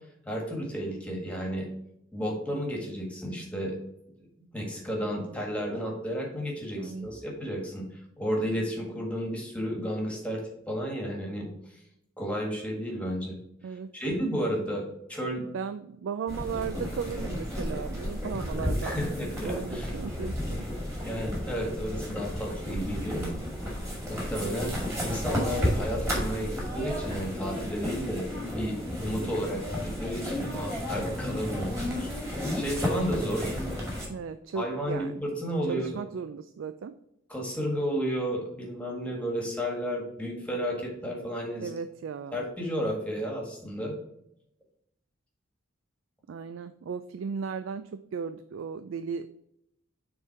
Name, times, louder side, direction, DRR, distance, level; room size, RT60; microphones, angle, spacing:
voice 1, 0.3-1.7 2.1-3.7 4.2-4.3 4.5-10.4 10.7-11.8 12.2-13.4 13.7-15.5 18.8-19.9 21.0-23.4 23.9-33.5 34.5-35.9 37.3-41.7 42.3-43.9, equal, 5° left, -1 dB, 1.6 m, -32 dB
voice 2, 6.7-7.1 13.6-13.9 15.5-19.0 19.4-20.7 29.2-29.6 30.5-30.7 34.1-35.1 35.7-37.0 41.6-42.5 46.3-49.4, right 6 dB, 75° right, 11 dB, 0.3 m, -36 dB
sound 1, 16.3-34.1, left 1 dB, 15° right, 2.2 m, -32 dB
6.9 x 3.6 x 4.6 m, 0.78 s
head